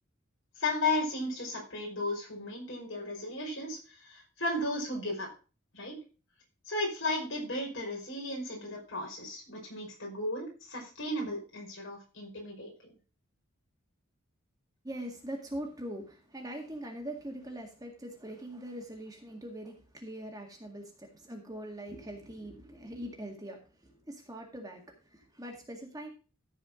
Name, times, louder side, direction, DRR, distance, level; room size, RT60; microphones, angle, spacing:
voice 1, 0.6-5.3 5.7-6.0 6.7-12.9, left 2 dB, 60° left, -1 dB, 5.4 m, -35 dB
voice 2, 14.8-26.1, right 1 dB, 15° right, 1 dB, 1.9 m, -42 dB
14.5 x 5.0 x 5.0 m, 0.34 s
head